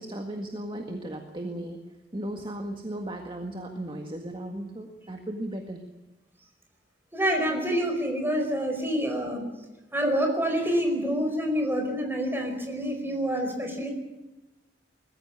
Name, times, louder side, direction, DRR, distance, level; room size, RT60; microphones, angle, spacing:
voice 1, 0.0-1.9 2.1-5.8, right 1 dB, 30° right, 3 dB, 1.8 m, -36 dB
voice 2, 7.1-9.4 9.9-13.9, equal, 10° right, 3 dB, 4.9 m, -27 dB
22.0 x 15.0 x 9.4 m, 1.0 s
head